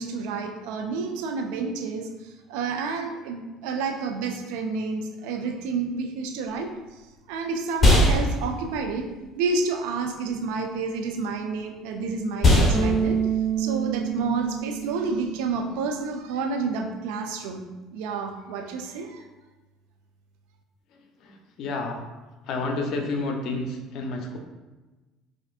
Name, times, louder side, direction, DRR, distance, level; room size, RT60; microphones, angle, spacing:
voice 1, 0.0-2.1 2.5-6.7 7.3-9.1 9.4-13.2 13.6-17.6 17.9-19.2, right 4 dB, 80° right, 4 dB, 0.4 m, -29 dB
sound 1, 6.4-16.1, left 1 dB, 25° left, 1.2 m, -25 dB
Bass guitar, 12.7-15.9, right 8 dB, 25° right, 0.5 m, -28 dB
voice 2, 21.6-22.0 22.5-24.4, left 2 dB, 65° left, 3 dB, 0.6 m, -29 dB
4.3 x 2.5 x 2.4 m, 1.1 s
hypercardioid pair, 75°, 0 cm